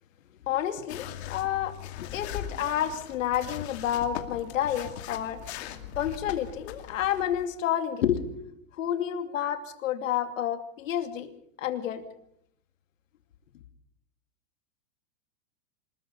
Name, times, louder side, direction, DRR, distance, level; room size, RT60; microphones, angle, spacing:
voice 1, 0.5-5.4 6.0-8.2 8.8-11.3 11.6-12.0, left 10 dB, 70° left, 8 dB, 2.8 m, -29 dB
sound 1, 0.9-7.5, left 11 dB, 55° left, 2.5 m, -40 dB
25.5 x 21.0 x 5.5 m, 0.72 s
supercardioid pair, 155°, 40 cm